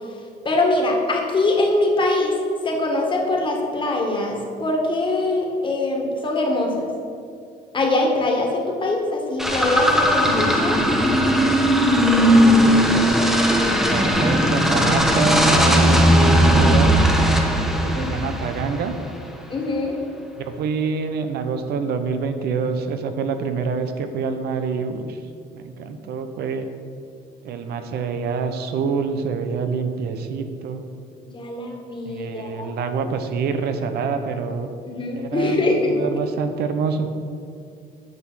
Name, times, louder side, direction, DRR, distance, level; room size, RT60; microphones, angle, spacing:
voice 1, 0.5-2.3 2.6-6.9 7.7-10.8 18.0-18.2 19.5-20.0 31.3-32.7 34.9-36.0, left 2 dB, 30° left, 0 dB, 2.0 m, -22 dB
sound 1, 9.4-18.9, equal, ahead, 1.1 m, -17 dB
voice 2, 12.0-13.1 13.9-16.9 17.8-18.9 20.4-25.2 25.5-26.7 27.4-30.8 32.0-34.7 35.1-37.1, right 5 dB, 70° right, 8 dB, 0.8 m, -26 dB
9.2 x 6.1 x 6.3 m, 2.4 s
cardioid pair, 110°, 17 cm